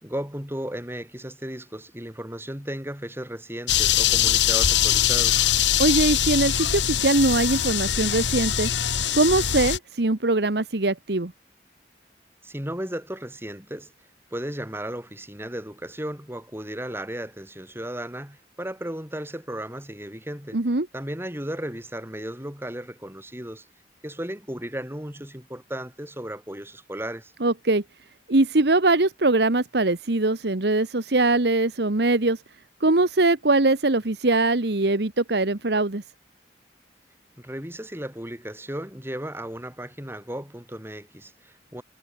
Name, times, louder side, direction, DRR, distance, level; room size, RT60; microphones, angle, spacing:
voice 1, 0.0-5.5 12.4-13.9 14.3-20.6 20.9-23.6 24.0-27.3 37.4-41.8, right 1 dB, 15° right, 6.6 m, -35 dB
sound 1, 3.7-9.8, left 10 dB, 85° left, 1.6 m, -22 dB
voice 2, 5.8-8.7 9.1-11.3 20.5-20.9 27.4-27.8 28.3-32.4 32.8-36.0, right 2 dB, 65° right, 1.3 m, -22 dB
head